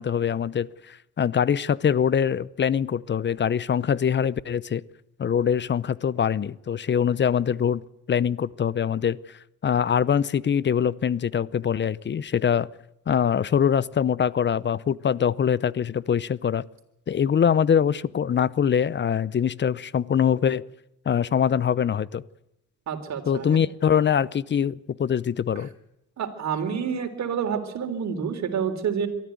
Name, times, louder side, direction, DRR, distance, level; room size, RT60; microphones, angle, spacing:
voice 1, 0.0-4.8 5.2-7.8 8.1-12.7 13.1-16.6 17.1-20.6 21.1-22.2 23.3-25.7, left 8 dB, 35° left, 21 dB, 0.7 m, -23 dB
voice 2, 22.9-23.5 26.2-29.1, right 7 dB, 65° right, 6 dB, 3.8 m, -28 dB
23.0 x 14.0 x 9.4 m, 0.87 s
cardioid pair, 90°, 30 cm